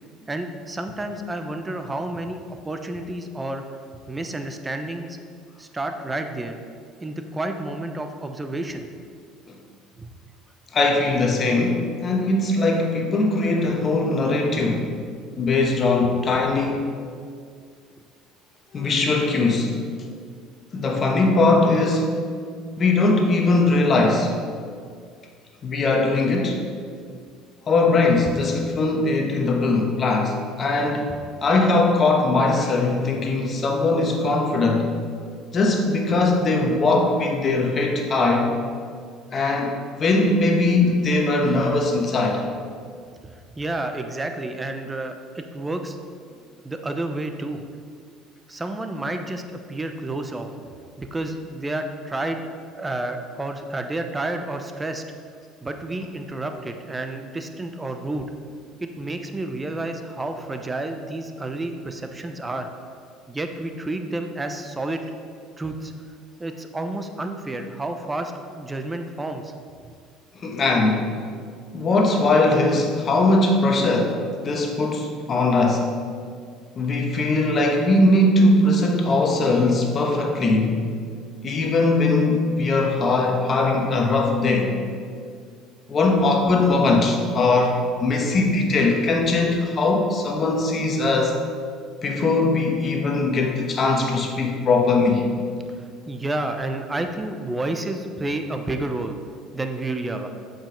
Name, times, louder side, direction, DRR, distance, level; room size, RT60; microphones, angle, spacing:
voice 1, 0.3-3.6 4.1-5.2 5.6-6.6 7.0-8.9 10.0-10.1 43.2-46.0 46.6-47.6 48.5-49.4 49.7-50.5 51.0-52.4 52.7-55.0 55.6-58.3 58.8-62.7 63.3-65.0 65.6-65.9 66.4-69.5 69.8-69.9 95.8-99.2 99.5-100.3, right 2 dB, 15° right, 6 dB, 0.7 m, -30 dB
voice 2, 10.7-14.9 15.4-16.9 18.7-19.8 20.7-22.3 22.8-24.3 25.6-26.6 27.7-34.9 35.5-38.5 39.3-42.4 70.4-71.0 71.7-75.9 76.8-80.8 81.4-84.7 85.9-91.4 92.0-95.2, left 2 dB, 35° left, 2 dB, 1.3 m, -20 dB
7.3 x 5.4 x 5.1 m, 2.1 s
supercardioid pair, 105°, 0 cm